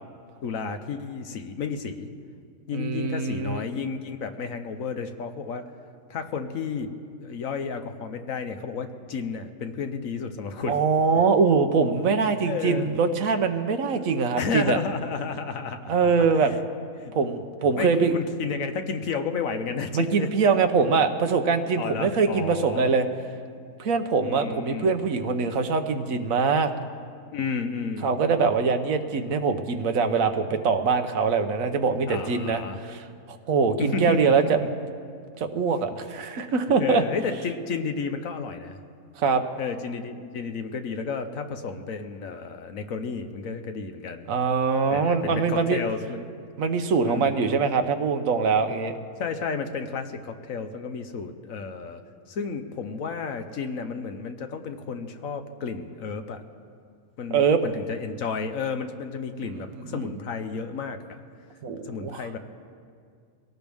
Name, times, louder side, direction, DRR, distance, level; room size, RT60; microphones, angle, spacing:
voice 1, 0.4-2.1 2.7-5.7 6.1-6.9 7.2-10.8 12.4-12.9 14.4-16.5 17.0-17.1 17.8-20.3 21.8-22.9 24.2-25.0 27.3-28.1 32.1-32.8 33.8-34.7 36.8-38.8 39.6-44.3 44.9-46.4 47.0-47.6 49.2-52.0 52.3-56.4 57.2-61.2 61.8-62.4, left 5 dB, 65° left, 7 dB, 1.2 m, -32 dB
voice 2, 2.7-3.6 10.7-14.8 15.9-16.5 17.1-18.1 19.9-23.1 23.8-26.7 28.0-34.6 35.4-37.0 39.2-39.4 44.3-45.8 46.6-49.0 57.3-57.6 59.8-60.0 61.6-62.2, right 5 dB, 65° right, 7 dB, 1.3 m, -23 dB
23.0 x 17.5 x 3.6 m, 2.2 s
omnidirectional pair, 1.6 m